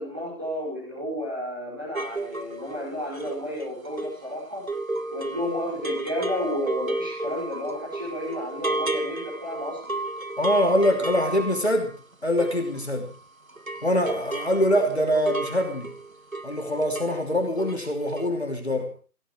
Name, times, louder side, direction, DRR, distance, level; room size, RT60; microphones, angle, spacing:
voice 1, 0.0-4.7 5.1-10.0, left 1 dB, 15° right, -7 dB, 5.5 m, -32 dB
sound 1, 1.9-13.2 13.5-17.2 17.5-17.9 18.2-18.3, right 2 dB, 65° right, 1.8 m, -33 dB
voice 2, 10.4-11.9 12.2-13.1 13.8-15.9 16.4-18.9, equal, 45° left, 4 dB, 3.0 m, -24 dB
25.5 x 16.5 x 3.3 m, 0.35 s
figure-of-eight pair, 175°, 45 cm